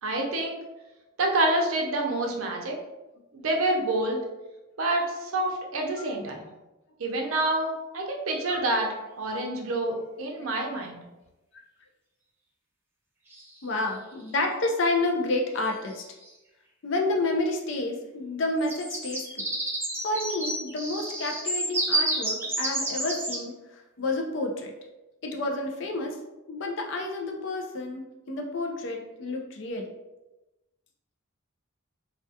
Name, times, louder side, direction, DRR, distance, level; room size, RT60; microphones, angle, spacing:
voice 1, 0.0-0.6 1.2-2.8 3.3-4.2 4.8-6.5 7.0-8.9 9.2-11.0, right 2 dB, 80° right, 0 dB, 0.5 m, -27 dB
sound 1, 8.9-9.0 13.3-13.9 15.5-15.6 15.9-16.2 18.5-23.4, right 1 dB, 10° right, 0.3 m, -30 dB
voice 2, 13.6-16.0 16.8-19.5 20.0-24.7 25.2-26.2 26.5-29.9, left 2 dB, 60° left, 2 dB, 0.4 m, -30 dB
2.3 x 2.2 x 2.6 m, 1.0 s
head